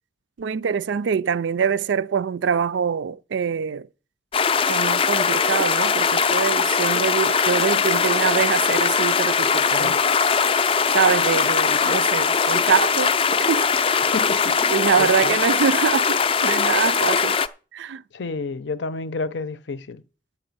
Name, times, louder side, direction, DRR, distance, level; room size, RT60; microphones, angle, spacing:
voice 1, 0.4-3.9 4.7-10.0 10.9-13.1 13.5-13.7 14.7-17.4 17.7-18.0, right 6 dB, 85° right, 0.4 m, -24 dB
sound 1, 4.3-17.5, left 6 dB, 30° left, 0.4 m, -20 dB
voice 2, 14.0-14.6 15.0-15.4 18.1-20.0, left 4 dB, 75° left, 0.6 m, -30 dB
8.8 x 5.9 x 7.8 m
head